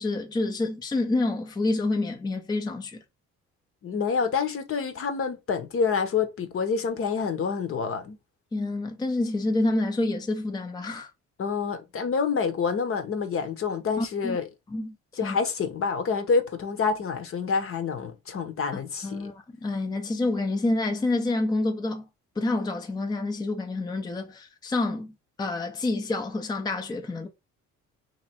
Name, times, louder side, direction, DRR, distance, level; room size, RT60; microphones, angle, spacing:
voice 1, 0.0-3.0 8.5-11.1 14.0-14.4 14.7-14.9 15.2-15.4 19.0-22.1 22.4-27.3, left 2 dB, 15° left, 0.5 m, -28 dB
voice 2, 3.8-8.2 11.4-14.5 15.2-19.3, left 5 dB, 50° left, 0.9 m, -27 dB
3.1 x 2.9 x 4.2 m
cardioid pair, 100°, 30 cm